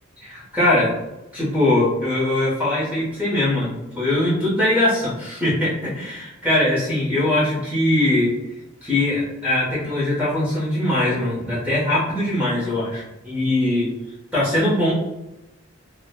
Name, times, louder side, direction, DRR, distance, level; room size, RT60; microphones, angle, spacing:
voice 1, 0.2-0.9 1.3-8.3 8.8-13.9 14.3-14.9, left 1 dB, 5° right, -9 dB, 1.0 m, -21 dB
4.6 x 2.2 x 2.2 m, 0.95 s
head